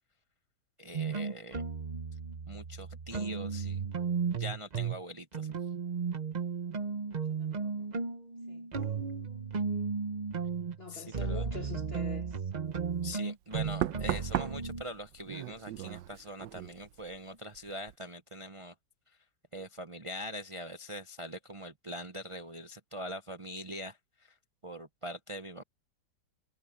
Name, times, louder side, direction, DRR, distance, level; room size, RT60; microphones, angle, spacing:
voice 1, 0.8-1.6 2.5-3.8 4.3-5.6 10.9-11.4 13.0-18.7 19.5-24.4 24.6-25.6, equal, 60° right, 0.3 m, -43 dB
sound 1, 0.9-5.0 5.3-14.8, right 5 dB, 35° right, 0.7 m, -35 dB
voice 2, 6.7-7.9 8.5-8.7 10.8-12.5, left 5 dB, 40° left, 1.4 m, -45 dB
Knock, 12.7-13.0 13.8-17.3 17.5-17.9, right 13 dB, 85° right, 1.4 m, -37 dB
omnidirectional pair, 1.9 m